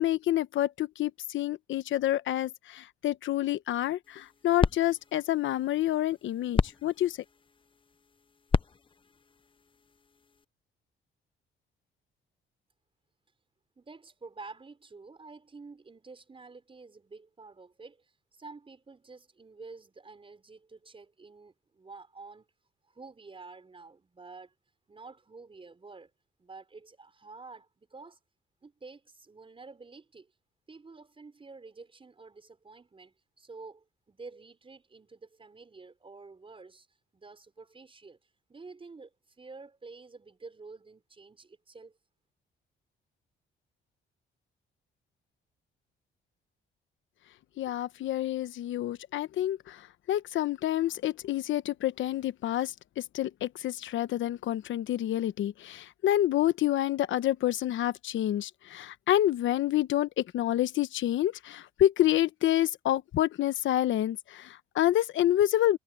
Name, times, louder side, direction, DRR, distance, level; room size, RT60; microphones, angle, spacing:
voice 1, 0.0-7.2 47.6-49.8 50.1-65.8, left 13 dB, 75° left, 1.0 m, -28 dB
sound 1, 4.0-10.4, left 5 dB, 25° left, 0.7 m, -34 dB
voice 2, 13.8-22.5 22.9-24.5 24.9-26.1 26.4-28.2 28.6-30.3 30.7-36.9 37.1-38.2 38.5-39.1 39.4-42.0, right 4 dB, 25° right, 5.1 m, -49 dB
cardioid pair, 90°, 20 cm